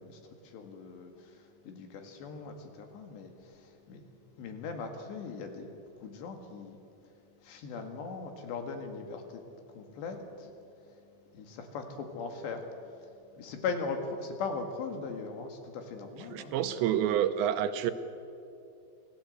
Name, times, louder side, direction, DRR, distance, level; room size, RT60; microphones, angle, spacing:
voice 1, 0.0-4.0 4.4-5.7 6.0-6.8 7.4-9.4 9.7-10.5 11.3-12.7 13.4-16.9, left 4 dB, 75° left, 5 dB, 4.1 m, -39 dB
voice 2, 16.3-17.9, right 10 dB, 85° right, 10 dB, 3.1 m, -28 dB
27.0 x 16.5 x 8.0 m, 2.6 s
omnidirectional pair, 5.1 m